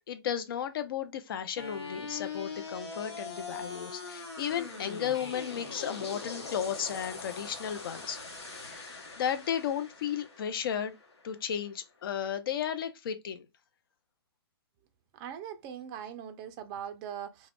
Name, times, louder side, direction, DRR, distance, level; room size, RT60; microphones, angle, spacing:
voice 1, 0.1-8.2 8.6-10.9 11.2-13.5, left 9 dB, 60° left, 0.5 m, -34 dB
sound 1, 1.6-11.6, left 4 dB, 85° left, 0.8 m, -42 dB
voice 2, 15.1-17.5, right 9 dB, 25° right, 0.4 m, -41 dB
2.3 x 2.1 x 3.3 m
hypercardioid pair, 135°, 14 cm